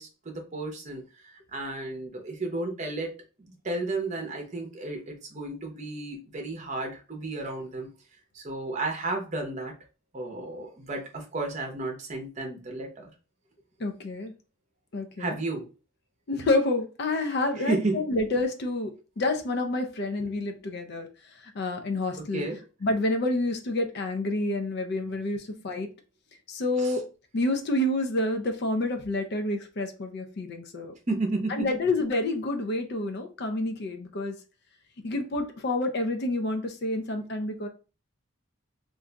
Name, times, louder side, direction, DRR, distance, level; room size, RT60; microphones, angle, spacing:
voice 1, 0.0-7.9 8.3-9.7 10.1-13.1 15.2-15.7 17.6-18.0 22.2-22.6 26.8-27.0 31.1-31.7, right 2 dB, 35° right, 0.7 m, -33 dB
voice 2, 13.8-14.3 14.9-15.4 16.3-17.8 18.1-21.1 21.5-22.4 22.8-25.9 26.5-27.0 27.3-30.9 31.6-34.4 35.0-37.7, left 2 dB, 50° left, 0.5 m, -28 dB
2.5 x 2.3 x 3.8 m
head